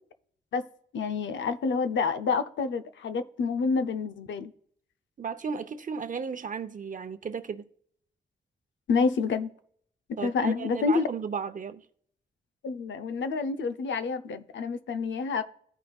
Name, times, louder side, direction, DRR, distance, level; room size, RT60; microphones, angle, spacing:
voice 1, 0.9-4.5 8.9-9.5 10.2-11.0 12.6-15.4, left 5 dB, 90° left, 0.6 m, -28 dB
voice 2, 5.2-7.7 10.2-11.8, right 6 dB, 45° right, 0.6 m, -34 dB
15.0 x 5.2 x 2.3 m
cardioid pair, 85°, 19 cm